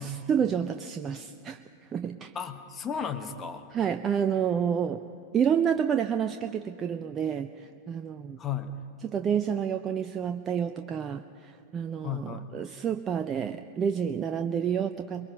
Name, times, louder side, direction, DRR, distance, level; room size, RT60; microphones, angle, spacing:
voice 1, 0.0-1.6 1.9-2.3 3.7-5.0 5.3-8.4 9.0-15.3, right 8 dB, 25° right, 8 dB, 0.5 m, -29 dB
voice 2, 2.3-3.6 8.4-8.8 12.0-12.5, left 6 dB, 25° left, 7 dB, 1.2 m, -34 dB
23.0 x 22.5 x 5.3 m, 2.5 s
figure-of-eight pair, 90°, 0 cm